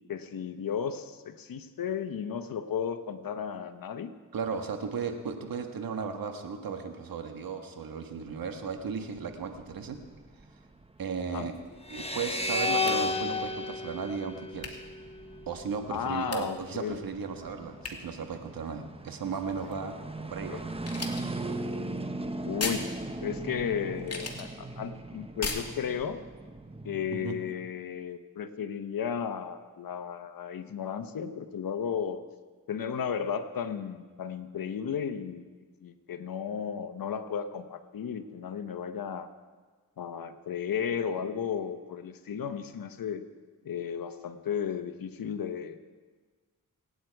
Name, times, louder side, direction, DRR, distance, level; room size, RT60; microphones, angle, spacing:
voice 1, 0.1-4.1 11.3-11.5 15.9-17.0 20.5-20.6 22.5-26.2 26.8-32.2 32.7-35.5 35.8-39.3 40.0-43.2 43.6-45.8, left 7 dB, 75° left, 9 dB, 1.1 m, -34 dB
voice 2, 4.3-10.0 11.0-11.5 11.9-14.8 15.5-20.0 20.3-20.6 27.1-27.4, right 5 dB, 80° right, 6 dB, 1.6 m, -35 dB
sound 1, 8.3-27.2, right 2 dB, 15° right, 1.1 m, -40 dB
sound 2, 11.3-11.9 12.9-13.0 14.6-14.8 16.3-16.5 17.8-18.0 19.3-19.8 20.8-21.3 22.6-22.9 23.9-24.5 25.4-25.7, left 3 dB, 45° left, 2.4 m, -37 dB
sound 3, 11.9-15.2, left 3 dB, 15° left, 1.2 m, -31 dB
25.0 x 9.4 x 4.7 m, 1.4 s
cardioid pair, 60°, 34 cm